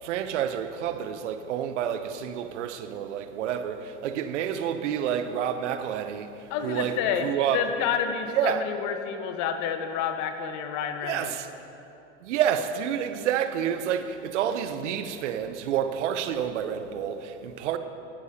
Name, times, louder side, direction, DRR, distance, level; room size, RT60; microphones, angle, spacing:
voice 1, 0.0-7.7 8.3-8.6 11.0-11.5 12.2-17.8, right 9 dB, 75° right, 0.8 m, -29 dB
voice 2, 6.5-7.3 7.5-11.3, left 8 dB, 50° left, 1.2 m, -29 dB
18.5 x 9.5 x 2.9 m
hypercardioid pair, 90°, 37 cm